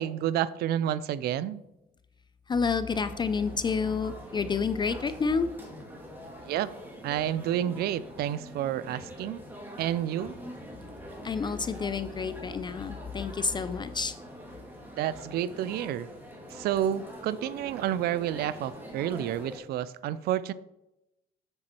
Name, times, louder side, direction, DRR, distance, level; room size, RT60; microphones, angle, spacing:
voice 1, 0.0-1.6 6.4-6.7 7.0-9.4 9.8-10.3 15.0-16.1 16.5-20.5, right 11 dB, 70° right, 16 dB, 0.5 m, -30 dB
voice 2, 2.5-5.5 11.2-14.1, left 5 dB, 25° left, 12 dB, 0.4 m, -29 dB
sound 1, 2.9-19.6, equal, 10° right, 2.2 m, -45 dB
7.8 x 6.9 x 4.3 m, 0.89 s
cardioid pair, 110°, 17 cm